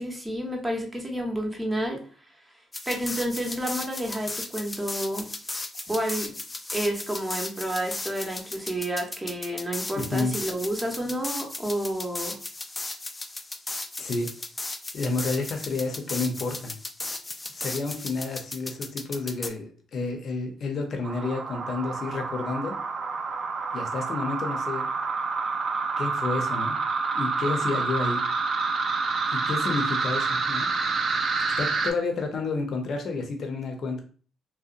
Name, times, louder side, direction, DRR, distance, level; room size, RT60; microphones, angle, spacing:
voice 1, 0.0-2.0 2.9-5.3 5.9-6.4 6.7-12.4, right 1 dB, 15° right, 1 dB, 0.7 m, -30 dB
sound 1, 2.7-19.5, left 2 dB, 20° left, 0.3 m, -36 dB
voice 2, 9.9-10.3 14.0-14.3 14.9-16.7 17.6-22.8 23.7-24.9 26.0-26.8 27.1-28.2 29.3-30.7 31.6-34.0, left 3 dB, 55° left, 4 dB, 0.6 m, -30 dB
sound 2, 21.0-31.9, right 4 dB, 60° right, 0.4 m, -28 dB
2.7 x 2.1 x 2.4 m, 0.41 s
cardioid pair, 90°, 0 cm